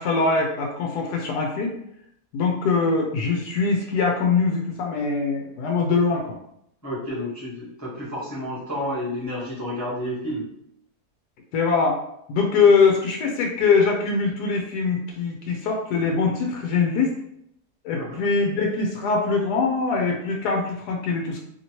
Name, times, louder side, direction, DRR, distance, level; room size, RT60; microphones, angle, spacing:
voice 1, 0.0-1.7 2.3-6.4 11.5-12.0 12.3-17.1 17.8-21.4, left 4 dB, 85° left, 1 dB, 1.1 m, -22 dB
voice 2, 6.8-10.5 17.9-18.2, left 1 dB, 15° left, -8 dB, 0.6 m, -30 dB
2.9 x 2.8 x 2.9 m, 0.75 s
omnidirectional pair, 1.7 m